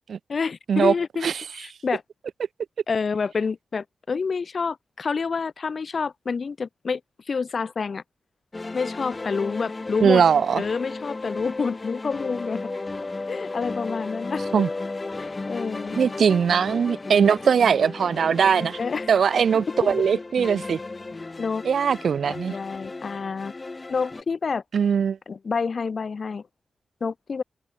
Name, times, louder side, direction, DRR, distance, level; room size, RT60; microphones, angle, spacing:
voice 1, 0.3-1.3 1.5-2.0 2.9-7.0 7.3-8.0 8.7-10.2 10.5-12.6 13.3-14.4 15.2-16.0 17.1-17.4 18.8-19.1 19.8-19.9 21.4-21.6 22.3-23.5 23.9-24.6 25.3-26.5 27.0-27.4, left 5 dB, 50° left, 1.0 m, -28 dB
sound 1, 8.5-24.2, left 3 dB, 25° left, 3.2 m, -34 dB
voice 2, 10.0-10.6 14.5-14.7 16.0-18.8 19.1-20.8 21.6-22.6 24.7-25.2, right 7 dB, 80° right, 1.8 m, -20 dB
wide cardioid pair, 150°, 0 cm